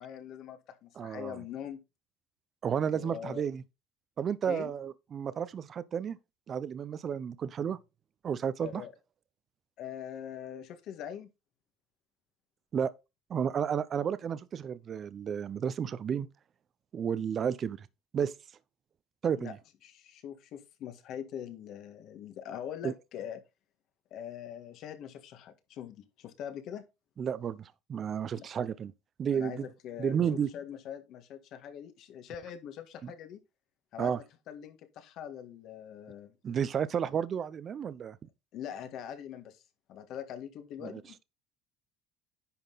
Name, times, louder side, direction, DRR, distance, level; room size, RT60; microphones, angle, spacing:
voice 1, 0.0-1.8 2.9-3.4 4.5-4.7 8.6-8.9 9.8-11.3 19.3-19.5 19.8-23.4 24.1-26.8 28.3-28.5 29.3-33.4 33.9-36.3 38.5-39.6 39.9-41.2, left 9 dB, 60° left, 1.7 m, -43 dB
voice 2, 1.0-1.4 2.6-3.6 4.2-6.2 6.5-7.8 8.2-8.8 12.7-12.9 13.3-16.3 16.9-17.9 18.1-18.3 19.2-19.6 22.8-22.9 27.2-28.9 29.2-29.6 30.0-30.5 34.0-34.2 36.4-38.2 40.8-41.0, right 8 dB, 40° right, 0.7 m, -32 dB
10.5 x 5.7 x 4.0 m
cardioid pair, 115°, 0 cm